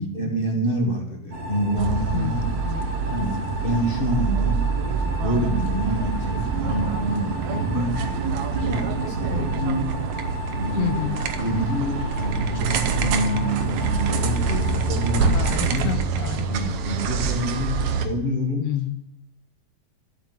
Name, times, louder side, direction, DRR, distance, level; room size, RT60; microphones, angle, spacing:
voice 1, 0.0-2.5 2.8-3.4 3.6-4.6 5.2-7.9 8.6-9.9 10.5-11.1 11.4-15.4 15.7-15.9 16.5-18.7, equal, 25° left, 1 dB, 1.5 m, -27 dB
sound 1, 1.3-15.5, equal, 55° right, 2.8 m, -34 dB
sound 2, 1.8-18.1, right 5 dB, 80° right, 2.3 m, -26 dB
voice 2, 9.4-9.7 10.8-11.2 15.3-16.7 18.6-19.1, left 14 dB, 80° left, 13 dB, 1.9 m, -30 dB
12.0 x 5.9 x 9.1 m, 0.79 s
omnidirectional pair, 3.4 m